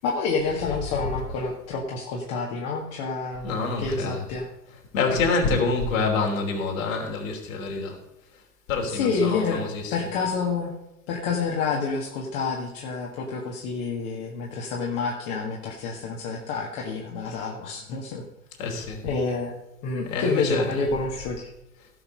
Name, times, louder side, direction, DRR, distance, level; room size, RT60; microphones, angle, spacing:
voice 1, 0.0-4.5 5.5-5.6 8.9-10.7 11.1-18.2 19.0-19.5 19.8-21.5, left 4 dB, 40° left, -1 dB, 1.8 m, -28 dB
voice 2, 3.4-4.3 4.9-8.0 8.7-10.1 18.6-19.0 20.1-20.8, left 4 dB, 60° left, 1 dB, 3.4 m, -26 dB
17.0 x 5.9 x 5.4 m, 0.90 s
figure-of-eight pair, 95°, 46 cm